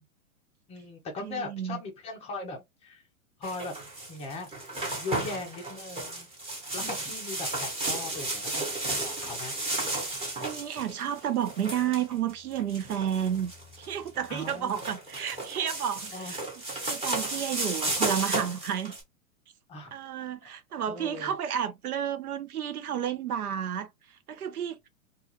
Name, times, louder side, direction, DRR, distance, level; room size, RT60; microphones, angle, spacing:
voice 1, 0.7-3.0 3.4-3.7 4.1-4.5 4.9-6.3 6.7-8.6 9.0-9.5 14.3-14.8 16.1-16.4 19.7-19.9 20.9-21.3, left 3 dB, 15° left, 0.4 m, -39 dB
voice 2, 1.2-1.8 6.8-6.9 10.4-13.5 13.8-19.0 19.9-24.8, right 9 dB, 85° right, 0.6 m, -31 dB
sound 1, 3.4-19.0, right 2 dB, 15° right, 0.9 m, -34 dB
2.3 x 2.2 x 2.9 m
hypercardioid pair, 110°, 43 cm